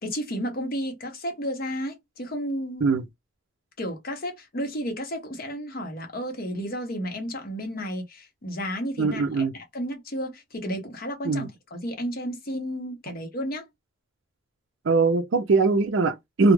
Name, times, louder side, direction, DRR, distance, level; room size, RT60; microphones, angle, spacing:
voice 1, 0.0-2.9 3.8-13.6, equal, 45° left, 0.7 m, -32 dB
voice 2, 9.0-9.5 11.2-11.5 14.8-16.5, right 4 dB, 60° right, 0.4 m, -21 dB
2.3 x 2.0 x 3.0 m
head